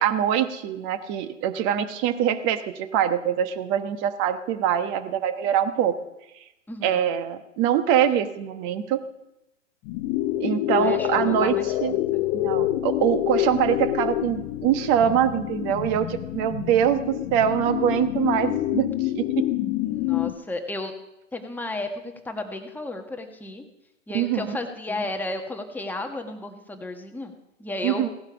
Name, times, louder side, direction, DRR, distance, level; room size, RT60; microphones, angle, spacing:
voice 1, 0.0-6.0 6.8-9.0 10.4-11.5 11.8-11.9 12.3-19.5 24.1-24.6 27.8-28.1, right 9 dB, 30° right, 10 dB, 1.2 m, -24 dB
voice 2, 6.7-7.0 10.7-12.2 19.8-20.9 21.3-23.6 24.1-27.3 27.6-28.0, left 2 dB, 5° left, 4 dB, 1.3 m, -33 dB
sound 1, 9.8-20.3, left 15 dB, 25° left, 0.6 m, -27 dB
17.0 x 11.0 x 5.1 m, 0.92 s
figure-of-eight pair, 115°, 38 cm